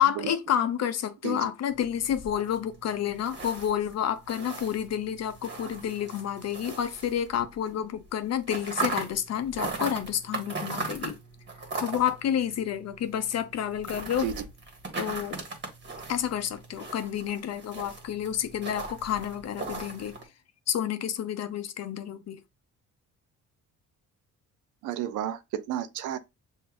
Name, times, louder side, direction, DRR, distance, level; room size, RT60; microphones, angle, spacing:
voice 1, 0.0-11.2 11.8-14.3 15.0-15.4 16.1-20.1 20.7-22.4, left 9 dB, 60° left, 0.6 m, -29 dB
sound 1, 1.7-7.7 8.0-20.2, right 3 dB, 40° right, 1.7 m, -39 dB
voice 2, 24.8-26.2, right 10 dB, 85° right, 0.5 m, -31 dB
6.7 x 2.7 x 2.5 m
cardioid pair, 90°, 30 cm